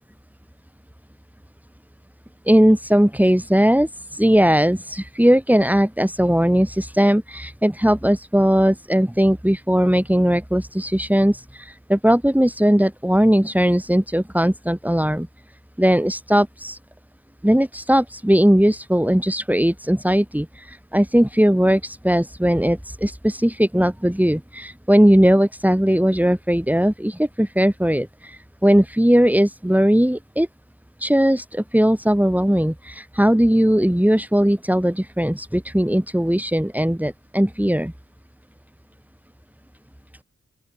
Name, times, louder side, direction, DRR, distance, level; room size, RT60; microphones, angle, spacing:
voice 1, 2.5-15.3 15.8-16.8 17.4-30.5 31.0-37.9, equal, 5° right, 7.6 m, -19 dB
open air
cardioid pair, 45°, 30 cm